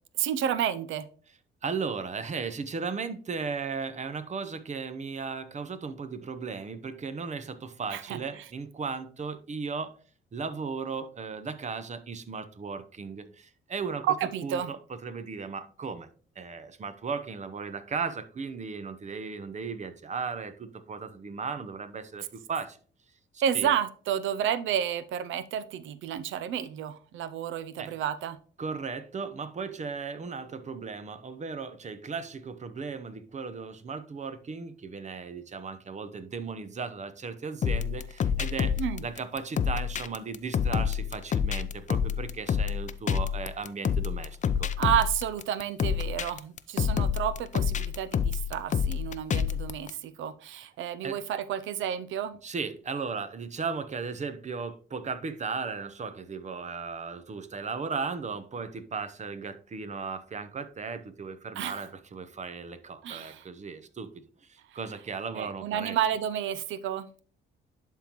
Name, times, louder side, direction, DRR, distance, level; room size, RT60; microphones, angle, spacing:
voice 1, 0.2-1.1 7.9-8.4 14.0-14.7 23.4-28.4 38.8-39.0 44.8-52.4 61.6-61.8 63.0-63.4 65.3-67.1, right 9 dB, 80° right, 14 dB, 0.5 m, -30 dB
voice 2, 1.6-9.9 10.3-14.0 14.4-16.1 16.4-22.8 23.5-23.7 27.8-27.9 28.6-44.7 51.0-51.2 52.4-66.0, right 5 dB, 35° right, 12 dB, 0.8 m, -36 dB
sound 1, 37.6-49.9, left 7 dB, 40° left, 0.5 m, -28 dB
11.0 x 3.8 x 3.0 m, 0.42 s
cardioid pair, 90°, 20 cm